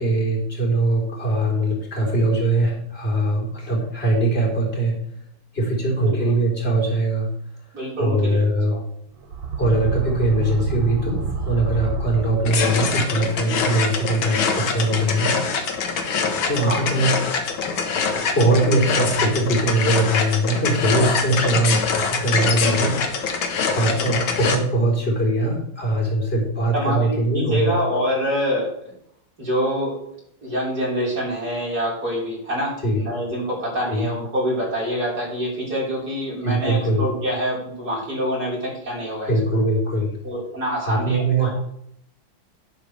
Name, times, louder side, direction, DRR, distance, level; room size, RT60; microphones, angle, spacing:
voice 1, 0.0-5.1 5.5-7.3 8.0-8.7 9.6-15.3 16.5-17.1 18.3-27.7 32.8-33.0 33.9-34.1 36.4-37.0 39.3-40.2 40.8-41.5, right 2 dB, 30° left, -2 dB, 4.3 m, -21 dB
voice 2, 6.0-6.3 7.7-8.4 8.7-8.8 16.5-16.8 23.9-24.0 26.7-28.7 29.4-30.0 30.4-39.6 40.2-41.6, equal, 50° right, -5 dB, 5.1 m, -26 dB
sound 1, 9.2-13.0, right 4 dB, 80° right, 2.1 m, -28 dB
sound 2, 12.5-24.6, left 5 dB, 90° left, 2.2 m, -24 dB
11.0 x 11.0 x 3.4 m, 0.70 s
omnidirectional pair, 2.1 m